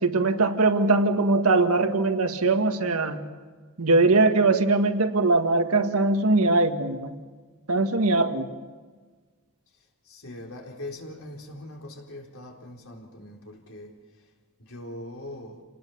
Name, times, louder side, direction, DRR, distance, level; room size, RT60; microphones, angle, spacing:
voice 1, 0.0-3.2 3.8-7.1 7.7-8.5, right 3 dB, 85° right, 1.8 m, -21 dB
voice 2, 10.0-14.3 14.6-15.6, left 1 dB, 70° left, 4.0 m, -41 dB
28.0 x 19.5 x 7.1 m
head